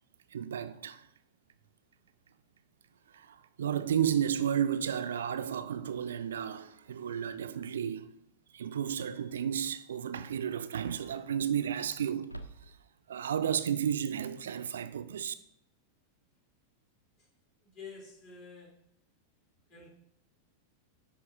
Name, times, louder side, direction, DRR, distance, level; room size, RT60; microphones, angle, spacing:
voice 1, 0.3-1.1 3.1-8.1 8.5-12.3 12.6-12.8 13.1-15.3, right 9 dB, 65° right, 0.3 m, -32 dB
sound 1, 12.2-13.1, right 2 dB, 90° left, 0.4 m, -48 dB
voice 2, 17.6-18.7 19.7-19.9, left 5 dB, 45° left, 2.6 m, -48 dB
9.9 x 4.1 x 2.6 m
figure-of-eight pair, 90°, 0 cm